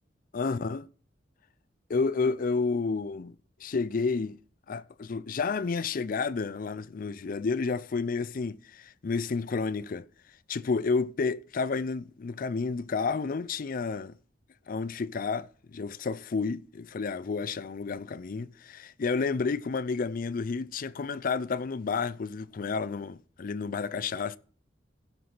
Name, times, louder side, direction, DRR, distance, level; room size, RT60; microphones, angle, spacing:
voice 1, 0.3-0.9 1.9-3.3 3.6-4.4 4.7-10.1 10.5-14.2 14.7-24.4, left 4 dB, 50° left, 0.4 m, -30 dB
16.0 x 6.0 x 3.9 m
head